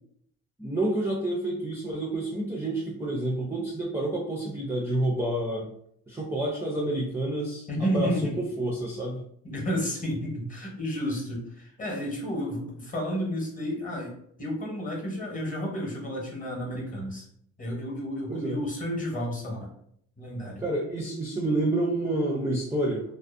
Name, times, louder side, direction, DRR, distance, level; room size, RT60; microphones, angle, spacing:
voice 1, 0.6-5.7 6.1-7.7 7.9-8.1 8.6-9.2 18.3-18.6 20.6-23.0, right 1 dB, 10° right, -3 dB, 0.4 m, -28 dB
voice 2, 7.7-8.4 9.4-17.2 17.6-19.7 20.2-20.6, equal, 25° left, 0 dB, 0.8 m, -31 dB
2.5 x 2.0 x 2.4 m, 0.68 s
cardioid pair, 110°, 32 cm